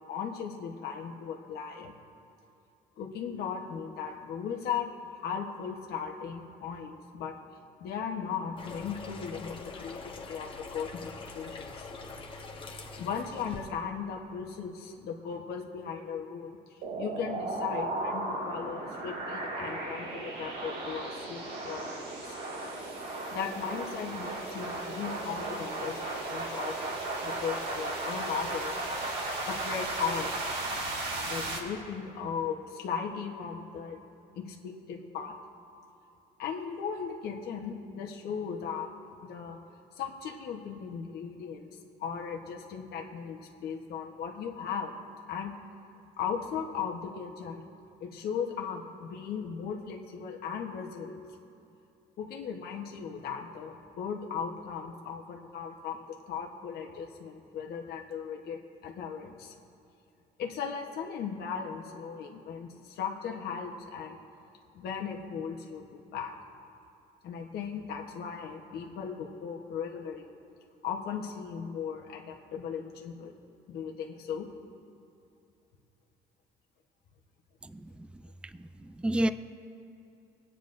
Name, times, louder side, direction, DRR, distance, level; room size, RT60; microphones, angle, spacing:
voice 1, 0.0-1.9 3.0-4.9 5.1-7.3 7.8-11.9 12.9-22.0 22.2-22.4 23.3-26.9 27.2-30.3 31.2-34.0 34.3-35.3 36.4-38.9 39.2-39.6 40.0-41.7 42.0-44.9 45.3-45.5 46.2-47.7 48.0-51.2 52.2-56.0 56.3-59.5 60.4-64.2 64.7-66.3 67.2-70.3 70.8-73.3 73.7-74.5, left 7 dB, 70° left, 0 dB, 1.1 m, -37 dB
sound 1, 8.6-13.7, left 3 dB, 30° left, 1.1 m, -43 dB
sound 2, 16.8-31.6, right 2 dB, 80° right, 2.4 m, -35 dB
voice 2, 78.6-79.3, right 1 dB, 5° right, 12 dB, 0.3 m, -29 dB
24.0 x 9.1 x 2.6 m, 2.7 s
cardioid pair, 110°, 17 cm